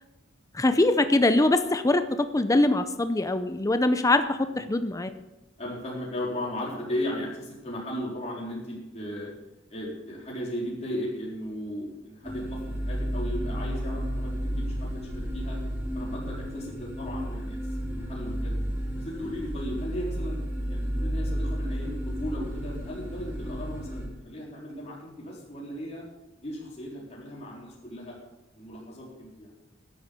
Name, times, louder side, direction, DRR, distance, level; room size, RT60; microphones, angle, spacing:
voice 1, 0.5-5.1, left 2 dB, 15° left, 10 dB, 0.6 m, -23 dB
voice 2, 5.6-9.3 9.7-15.6 15.9-18.6 18.9-20.4 20.7-26.0 26.4-28.2 28.5-29.5, equal, 35° left, -5 dB, 4.0 m, -36 dB
sound 1, 12.2-24.1, equal, 10° right, 3.8 m, -32 dB
14.0 x 11.0 x 5.2 m, 1.0 s
head